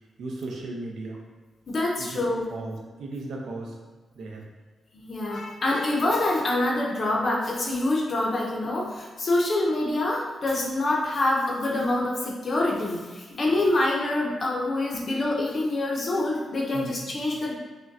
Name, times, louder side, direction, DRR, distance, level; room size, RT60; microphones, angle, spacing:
voice 1, 0.2-1.2 2.0-2.1 2.5-3.8 4.1-4.4 13.3-13.4 14.9-15.1 16.7-17.2, right 2 dB, 80° right, 0 dB, 0.6 m, -36 dB
voice 2, 1.7-2.5 4.9-17.5, left 2 dB, 35° left, -1 dB, 0.6 m, -26 dB
5.1 x 2.1 x 2.6 m, 1.3 s
wide cardioid pair, 180°, 0 cm